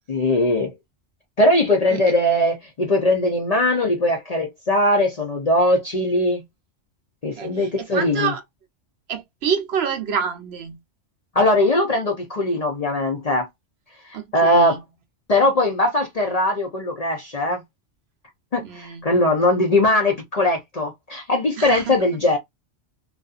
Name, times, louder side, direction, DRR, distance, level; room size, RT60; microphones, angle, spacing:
voice 1, 0.1-0.7 1.4-6.4 7.2-8.3 11.3-13.5 14.1-14.8 15.3-17.6 18.5-22.4, left 1 dB, 45° left, 0.5 m, -20 dB
voice 2, 7.4-8.4 9.1-10.8 14.1-14.8 18.6-19.1 21.6-22.0, right 7 dB, 65° right, 0.8 m, -27 dB
2.5 x 2.4 x 2.3 m
omnidirectional pair, 1.2 m